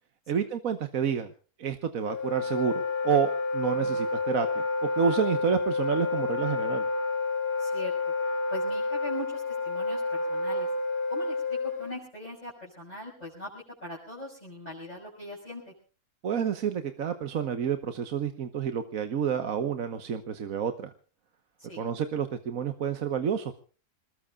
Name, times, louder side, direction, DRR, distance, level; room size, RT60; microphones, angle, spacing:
voice 1, 0.3-1.3 1.6-6.9 16.2-20.9 21.8-23.6, right 7 dB, 65° right, 8 dB, 1.5 m, -29 dB
Wind instrument woodwind instrument, 2.0-11.9, left 3 dB, 65° left, 2.4 m, -29 dB
voice 2, 7.6-8.0 8.5-10.7 11.1-15.7 21.6-21.9, equal, 25° left, -4 dB, 6.3 m, -41 dB
27.5 x 20.5 x 2.4 m, 0.38 s
omnidirectional pair, 1.6 m